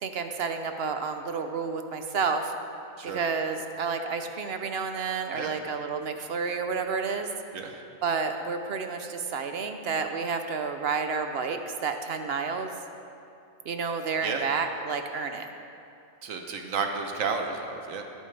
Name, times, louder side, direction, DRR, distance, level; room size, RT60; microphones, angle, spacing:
voice 1, 0.0-2.5 3.0-7.3 8.0-12.7 13.7-15.5, right 5 dB, 55° right, 6 dB, 0.8 m, -30 dB
voice 2, 16.2-18.0, right 5 dB, 75° right, 4 dB, 1.3 m, -32 dB
17.0 x 8.9 x 3.3 m, 2.7 s
omnidirectional pair, 1.4 m